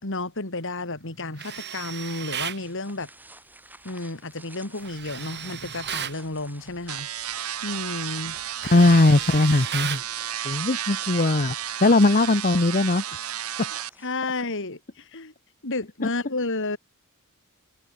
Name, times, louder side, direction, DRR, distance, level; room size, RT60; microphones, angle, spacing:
voice 1, 0.0-3.1 3.8-7.1 7.6-8.4 14.0-15.3 15.6-16.8, left 2 dB, 60° left, 3.5 m, -31 dB
Tools, 1.4-2.6 4.8-6.2 7.7-7.9 8.3-10.1, right 9 dB, 50° right, 7.1 m, -35 dB
sound 1, 2.6-14.5, right 2 dB, 10° right, 7.5 m, -50 dB
sound 2, 6.9-13.9, right 11 dB, 80° right, 1.7 m, -32 dB
voice 2, 8.6-10.0 10.4-13.0 13.6-13.7, left 2 dB, 40° left, 1.1 m, -19 dB
head